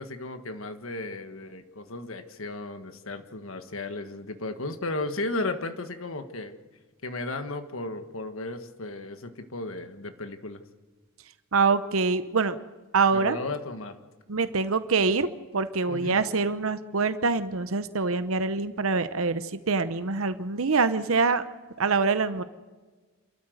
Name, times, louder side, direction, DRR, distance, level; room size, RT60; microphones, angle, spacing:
voice 1, 0.0-6.5 7.0-10.6 13.1-14.0 15.9-16.2, left 2 dB, 75° left, 8 dB, 1.5 m, -35 dB
voice 2, 11.5-12.6 12.9-13.4 14.3-15.3 15.5-21.4 21.8-22.4, right 4 dB, 80° right, 12 dB, 0.9 m, -25 dB
28.0 x 13.0 x 7.9 m, 1.3 s
head